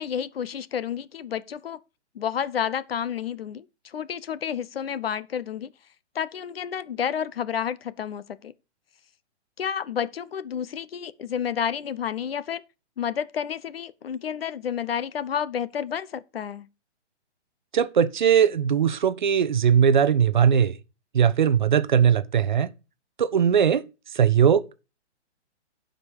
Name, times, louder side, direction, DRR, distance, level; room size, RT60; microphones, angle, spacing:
voice 1, 0.0-1.8 2.1-5.7 6.1-8.5 9.6-12.6 13.0-16.7, left 8 dB, 55° left, 0.7 m, -30 dB
voice 2, 17.7-20.8 21.1-22.7 23.2-23.8 24.1-24.6, right 8 dB, 45° right, 0.6 m, -19 dB
11.0 x 5.2 x 5.2 m
hypercardioid pair, 165°, 35 cm